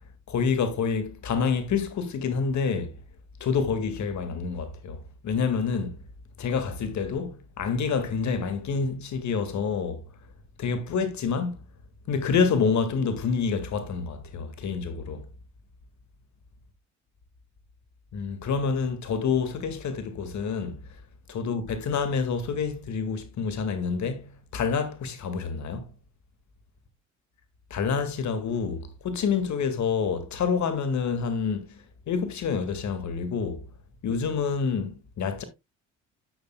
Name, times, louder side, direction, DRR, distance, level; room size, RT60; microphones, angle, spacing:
voice 1, 0.3-3.0 3.4-6.0 6.4-10.1 10.6-11.6 12.1-15.3 18.1-21.0 21.3-25.9 27.7-33.7 34.0-35.4, left 5 dB, 50° left, 2.0 m, -28 dB
8.9 x 8.7 x 2.3 m
hypercardioid pair, 60°, 36 cm